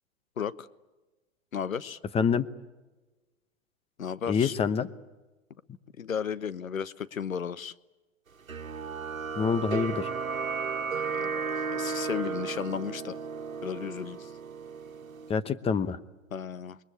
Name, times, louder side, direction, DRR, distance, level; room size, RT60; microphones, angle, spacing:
voice 1, 0.4-0.7 1.5-2.0 4.0-4.5 6.0-7.7 11.1-13.2 13.6-14.3 16.3-16.8, left 7 dB, 90° left, 1.0 m, -34 dB
voice 2, 2.1-2.5 4.3-4.9 9.4-10.1 15.3-16.0, left 6 dB, 15° left, 0.9 m, -26 dB
sound 1, 8.5-15.3, right 5 dB, 90° right, 1.5 m, -34 dB
27.5 x 22.0 x 8.7 m
hypercardioid pair, 115°, 40 cm